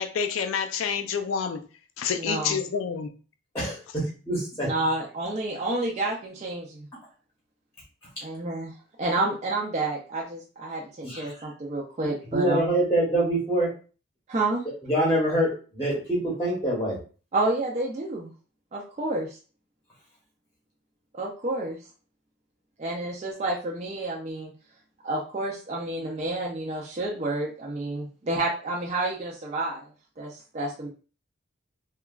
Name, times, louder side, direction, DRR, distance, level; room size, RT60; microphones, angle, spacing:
voice 1, 0.0-1.6 2.0-3.1, left 6 dB, 80° left, 8 dB, 0.3 m, -28 dB
voice 2, 2.2-2.6 4.6-6.9 8.2-8.7 9.0-12.6 14.3-14.6 17.3-18.3 18.7-19.4 21.1-21.8 22.8-24.5 25.0-29.9 30.2-30.9, right 2 dB, 35° right, -2 dB, 0.4 m, -29 dB
voice 3, 3.5-4.7 11.0-11.3 12.3-13.7 14.8-17.0, right 1 dB, 10° left, -5 dB, 0.8 m, -25 dB
2.9 x 2.2 x 2.3 m, 0.37 s
head